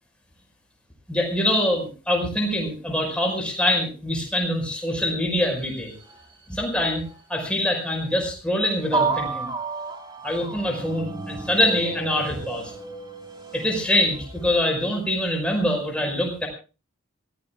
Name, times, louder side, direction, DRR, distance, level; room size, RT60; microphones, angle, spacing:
voice 1, 1.1-5.9 6.5-7.0 7.3-9.5 10.2-12.7 13.5-16.5, left 1 dB, 5° left, 1 dB, 5.2 m, -24 dB
sound 1, 5.6-6.6 7.0-7.2 8.0-8.1 8.9-14.7, right 4 dB, 20° right, 2.6 m, -32 dB
26.5 x 16.0 x 2.4 m, 0.33 s
head